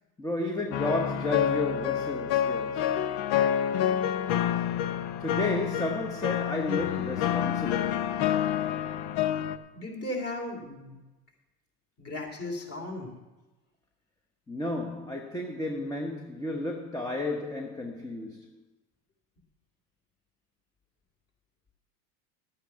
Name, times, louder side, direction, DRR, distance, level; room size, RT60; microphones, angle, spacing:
voice 1, 0.2-2.9 5.2-8.1 14.5-18.6, left 2 dB, 5° left, 1.0 m, -32 dB
sound 1, 0.7-9.6, left 10 dB, 55° left, 0.8 m, -28 dB
voice 2, 9.7-10.9 12.0-13.1, left 1 dB, 30° left, 3.3 m, -36 dB
11.5 x 8.9 x 5.7 m
supercardioid pair, 105°, 47 cm